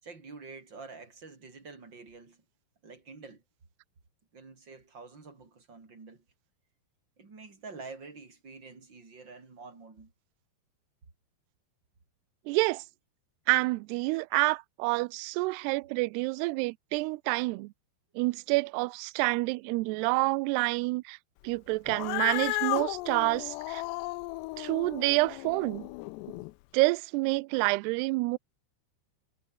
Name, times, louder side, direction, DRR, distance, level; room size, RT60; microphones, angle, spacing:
voice 1, 0.0-2.4 2.8-3.4 4.3-6.2 7.2-10.1, right 4 dB, 25° right, 4.3 m, -47 dB
voice 2, 12.5-12.8 13.5-17.7 18.2-21.2 21.4-23.8 24.6-25.9 26.7-28.4, right 25 dB, 80° right, 2.6 m, -28 dB
Cat, 21.9-26.5, left 23 dB, 85° left, 2.7 m, -34 dB
omnidirectional pair, 4.9 m